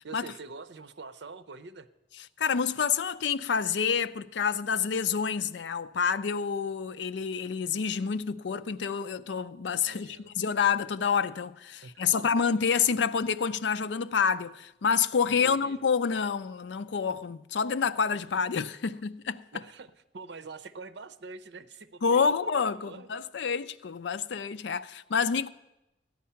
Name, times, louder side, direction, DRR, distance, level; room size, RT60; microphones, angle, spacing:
voice 1, 0.0-1.9 9.8-10.3 11.8-12.3 15.3-15.8 19.5-19.9 20.1-22.4 22.8-23.2, right 4 dB, 80° right, 0.7 m, -45 dB
voice 2, 2.4-19.4 22.0-25.5, left 6 dB, 85° left, 0.5 m, -28 dB
14.0 x 10.5 x 5.7 m
head